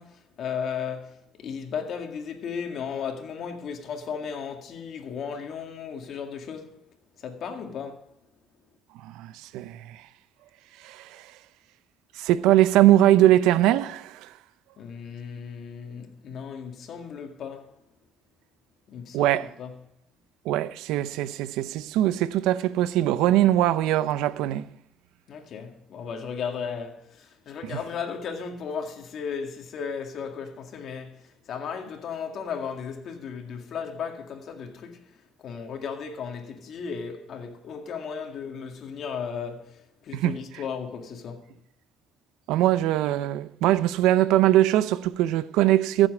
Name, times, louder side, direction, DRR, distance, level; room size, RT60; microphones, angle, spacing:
voice 1, 0.0-6.8 7.2-8.1 14.8-17.8 18.9-19.8 25.3-35.1 35.4-41.5, left 6 dB, 60° left, 2.0 m, -35 dB
voice 2, 9.0-10.0 10.8-11.2 12.2-14.3 19.1-19.5 20.5-24.7 27.7-27.8 40.1-40.3 42.5-46.1, right 14 dB, 90° right, 0.5 m, -21 dB
15.0 x 7.7 x 4.8 m
cardioid pair, 105°, 0 cm